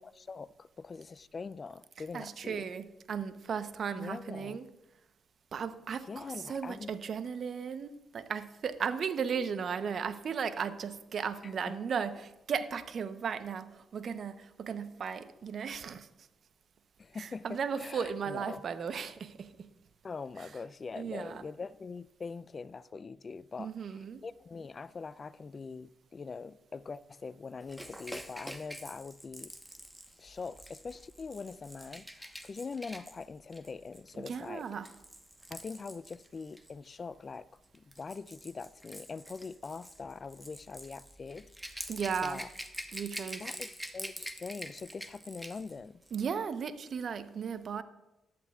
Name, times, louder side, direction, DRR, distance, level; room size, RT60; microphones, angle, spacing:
voice 1, 0.0-2.7 4.0-4.6 6.1-6.9 11.4-11.8 17.0-18.6 20.0-29.5 30.2-34.7 35.5-37.5 37.7-41.5 42.2-42.5 43.4-46.0, left 4 dB, 45° left, 0.4 m, -43 dB
voice 2, 2.1-4.7 5.5-16.1 17.2-19.7 21.0-21.4 23.6-24.2 34.2-34.9 41.9-42.4 42.9-43.4 46.1-47.8, right 6 dB, 60° right, 0.8 m, -36 dB
Rattle / Rattle (instrument), 27.7-36.7 37.6-45.7 46.0-46.2, equal, 5° right, 1.1 m, -46 dB
14.5 x 11.0 x 2.4 m
supercardioid pair, 50°, 0 cm